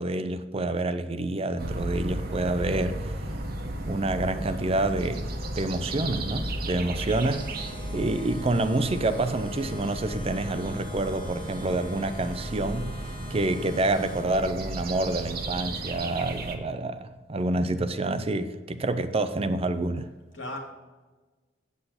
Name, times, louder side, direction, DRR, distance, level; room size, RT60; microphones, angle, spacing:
voice 1, 0.0-3.1 3.9-13.0 13.3-20.1, right 2 dB, 35° right, 0.6 m, -28 dB
sound 1, 1.6-16.6, right 1 dB, 55° right, 1.1 m, -34 dB
sound 2, 7.1-14.3, left 2 dB, 25° left, 1.1 m, -46 dB
voice 2, 20.0-20.6, left 1 dB, 85° left, 2.3 m, -39 dB
8.1 x 7.9 x 4.2 m
head